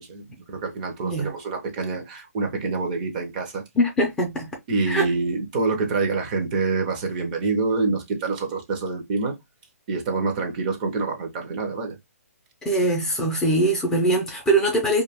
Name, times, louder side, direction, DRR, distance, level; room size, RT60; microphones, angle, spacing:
voice 1, 0.0-3.6 4.7-9.4 9.9-12.0, right 3 dB, 30° right, 0.6 m, -26 dB
voice 2, 3.8-4.5 4.9-5.1 12.6-15.0, right 1 dB, 5° left, 0.5 m, -22 dB
2.2 x 2.2 x 3.3 m
hypercardioid pair, 155°, 8 cm